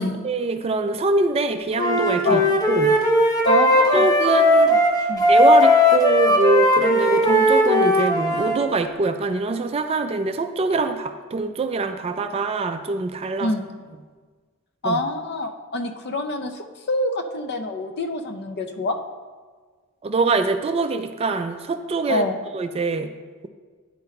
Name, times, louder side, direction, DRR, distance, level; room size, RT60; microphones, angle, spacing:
voice 1, 0.2-2.4 2.7-3.0 3.9-4.7 5.3-13.5 14.8-15.0 20.0-22.2 22.5-23.1, right 3 dB, 25° right, 8 dB, 0.3 m, -23 dB
Wind instrument woodwind instrument, 1.8-8.6, left 1 dB, 15° left, 0.8 m, -17 dB
voice 2, 3.4-4.1 4.6-4.8 5.1-5.2 13.4-13.7 14.8-19.0 22.1-22.4, left 2 dB, 50° left, 7 dB, 0.5 m, -26 dB
9.8 x 4.0 x 4.2 m, 1.5 s
head